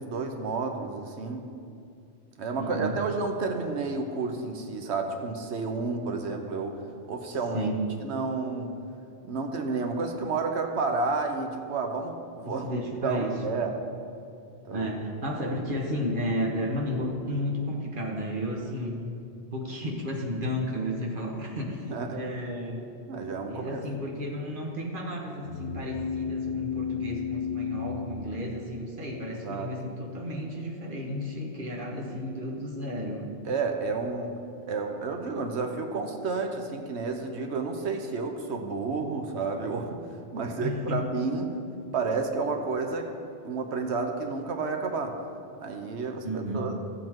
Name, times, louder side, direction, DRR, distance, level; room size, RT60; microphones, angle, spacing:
voice 1, 0.0-1.4 2.4-6.8 7.1-7.7 8.0-8.7 9.2-13.7 14.6-14.9 21.9-22.2 23.1-23.8 29.4-29.7 33.4-34.3 34.7-40.0 40.3-41.6 41.9-43.1 43.4-45.2 45.6-46.7, right 4 dB, 80° right, 4 dB, 1.1 m, -31 dB
voice 2, 2.6-3.0 7.5-7.8 12.4-13.6 14.7-19.0 19.5-22.8 23.5-33.3 40.6-41.0 46.2-46.7, equal, 50° right, -1 dB, 1.5 m, -32 dB
sound 1, 25.5-29.2, left 6 dB, 85° left, 1.0 m, -33 dB
13.5 x 7.8 x 3.7 m, 2.4 s
omnidirectional pair, 1.1 m